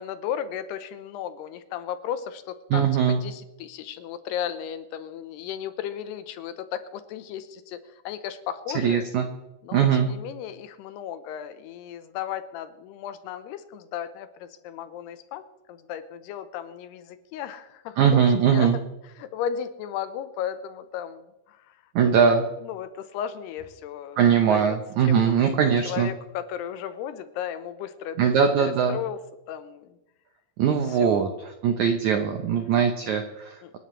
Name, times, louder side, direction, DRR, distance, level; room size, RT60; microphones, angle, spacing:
voice 1, 0.0-7.8 8.1-9.0 9.6-21.7 22.0-22.2 22.6-28.2 28.6-29.2 29.5-30.0 30.7-31.2 33.6-33.7, left 9 dB, 90° left, 11 dB, 2.9 m, -35 dB
voice 2, 2.7-3.2 8.8-9.3 9.7-10.1 18.0-18.8 22.0-22.4 24.2-26.1 28.2-29.0 30.6-31.3 31.6-33.8, right 7 dB, 80° right, 5 dB, 1.7 m, -21 dB
26.5 x 11.5 x 3.2 m, 0.96 s
omnidirectional pair, 4.7 m